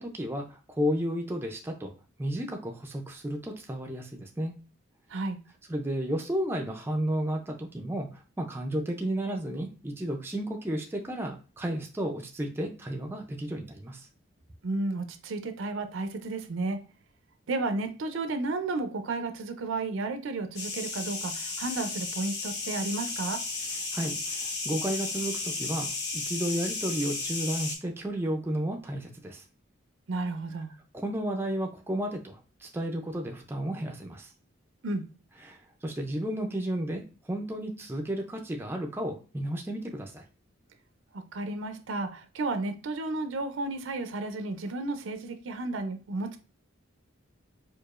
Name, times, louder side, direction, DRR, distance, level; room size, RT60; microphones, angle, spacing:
voice 1, 0.0-1.9 2.2-4.5 5.7-14.1 23.9-25.9 26.1-29.4 30.9-34.3 35.4-40.2, equal, 10° right, 2 dB, 0.4 m, -32 dB
voice 2, 14.6-16.8 17.5-23.4 30.1-30.7 34.8-35.1 41.1-46.4, right 2 dB, 70° right, 8 dB, 0.5 m, -32 dB
sound 1, 20.6-27.8, left 3 dB, 50° left, 0.9 m, -34 dB
4.7 x 2.3 x 2.4 m, 0.35 s
head